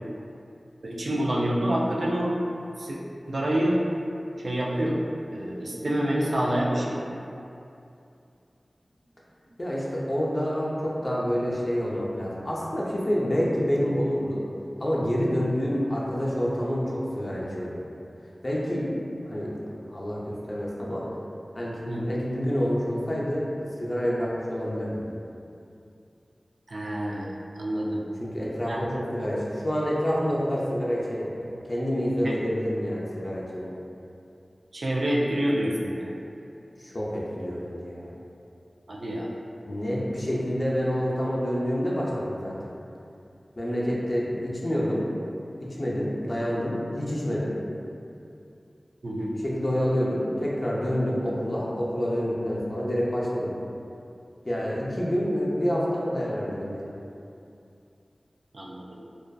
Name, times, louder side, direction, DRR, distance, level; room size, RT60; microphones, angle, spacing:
voice 1, 0.8-2.3 2.8-3.0 3.3-3.8 4.4-5.0 5.3-6.9 21.9-22.0 26.7-28.0 28.7-29.0 32.2-32.4 34.7-36.1 38.9-39.3 49.0-49.4 58.5-59.0, right 1 dB, 75° right, -4 dB, 0.3 m, -27 dB
sound 1, 5.3-6.2 6.4-7.3 7.7-7.8 8.2-8.3 8.8-10.2 10.5-11.2, equal, 60° right, 1.2 m, -43 dB
voice 2, 9.6-14.4 14.8-17.8 18.4-18.9 19.3-19.5 19.9-21.1 21.5-23.5 23.8-25.0 28.2-33.8 36.8-38.1 39.7-42.7 43.6-45.1 45.6-47.6 49.4-53.5 54.4-57.0, equal, 40° left, -5 dB, 0.5 m, -28 dB
2.5 x 2.3 x 2.2 m, 2.6 s
wide cardioid pair, 45°, 0 cm